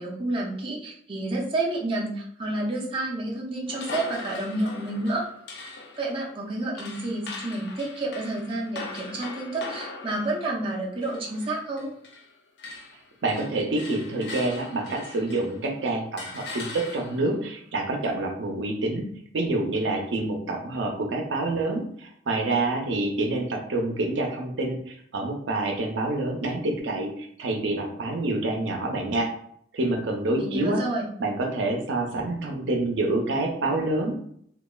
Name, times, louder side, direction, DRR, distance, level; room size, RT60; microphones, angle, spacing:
voice 1, 0.0-5.2 6.0-11.9 30.4-31.1, right 2 dB, 30° right, -3 dB, 0.5 m, -30 dB
sound 1, 3.7-12.3 12.6-15.6 16.2-17.4, left 3 dB, 65° left, 0.4 m, -40 dB
voice 2, 13.2-19.1 19.3-29.3 29.7-30.8 31.2-34.2, right 2 dB, 85° right, 2 dB, 0.5 m, -27 dB
3.0 x 2.2 x 2.2 m, 0.66 s
head